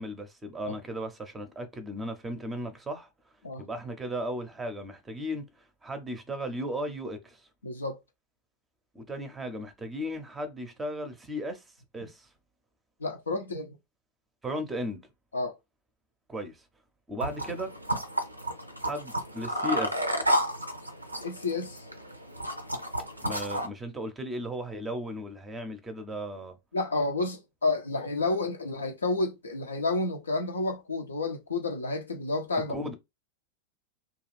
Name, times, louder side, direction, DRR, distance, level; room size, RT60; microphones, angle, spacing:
voice 1, 0.0-3.1 3.6-7.5 8.9-12.3 14.4-15.1 16.3-16.7 17.1-17.8 18.8-20.1 23.2-26.6 32.7-32.9, equal, 15° right, 0.6 m, -36 dB
voice 2, 7.6-8.0 13.0-13.8 15.3-15.5 21.2-21.8 26.7-32.7, left 3 dB, 75° left, 0.6 m, -30 dB
sound 1, 17.2-23.7, equal, 85° right, 0.4 m, -31 dB
2.4 x 2.3 x 3.2 m
figure-of-eight pair, 90°, 0 cm